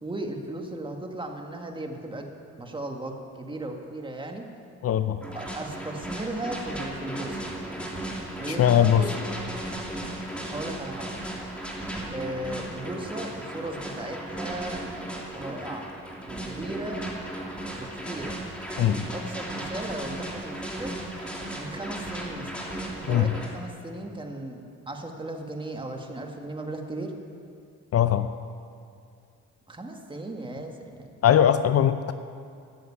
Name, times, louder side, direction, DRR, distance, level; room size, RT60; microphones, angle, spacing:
voice 1, 0.0-2.3 2.6-4.5 5.3-7.4 8.4-9.3 10.4-11.1 12.1-14.8 15.3-15.9 16.2-17.0 17.8-18.3 18.8-20.9 21.5-22.5 22.9-27.1 29.7-31.1, right 1 dB, 15° right, 2 dB, 1.7 m, -36 dB
voice 2, 4.8-5.2 8.5-9.0 18.8-19.0 23.1-23.3 27.9-28.3 31.2-32.1, left 10 dB, 55° left, 11 dB, 0.6 m, -20 dB
sound 1, 5.2-23.5, right 1 dB, 5° left, 2.9 m, -36 dB
13.0 x 7.9 x 8.7 m, 2.4 s
cardioid pair, 90°, 30 cm